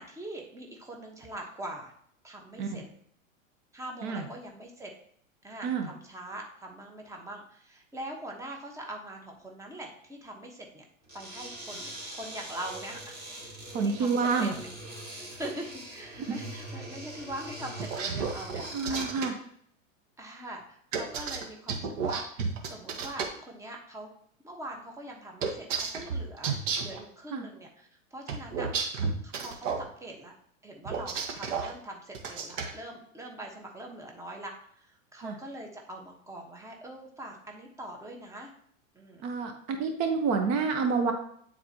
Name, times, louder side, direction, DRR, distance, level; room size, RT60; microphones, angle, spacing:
voice 1, 0.0-1.9 2.2-2.8 3.7-4.9 5.4-10.8 11.1-13.2 13.8-14.7 15.1-19.1 20.2-24.1 24.4-26.5 26.8-28.7 29.2-30.3 30.6-38.5 38.9-39.2, right 1 dB, 5° right, 1 dB, 1.2 m, -42 dB
sound 1, 11.0-19.3, right 1 dB, 25° right, 2.9 m, -42 dB
voice 2, 13.7-14.5 18.7-19.3 27.3-27.5 35.2-35.3 39.2-41.1, right 5 dB, 45° right, 5 dB, 1.1 m, -28 dB
sound 2, 17.8-19.3 20.9-23.3 25.4-27.0 28.3-29.8 30.8-31.7 32.1-32.7, right 5 dB, 70° right, 1.4 m, -32 dB
9.4 x 4.2 x 2.9 m, 0.64 s
hypercardioid pair, 110°, 40 cm